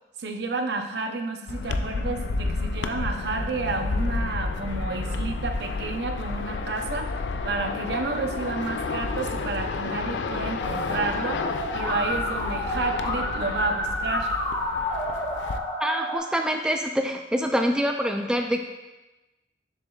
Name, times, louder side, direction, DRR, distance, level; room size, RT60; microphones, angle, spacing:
voice 1, 0.2-11.4 11.7-14.3, right 3 dB, 70° right, 5 dB, 0.7 m, -30 dB
sound 1, 1.5-15.6, left 3 dB, 85° left, 0.4 m, -31 dB
Musical instrument, 10.6-16.2, left 1 dB, 45° left, 2.0 m, -30 dB
voice 2, 15.8-18.6, equal, 5° right, 4 dB, 0.3 m, -25 dB
7.0 x 6.7 x 2.4 m, 1.1 s
head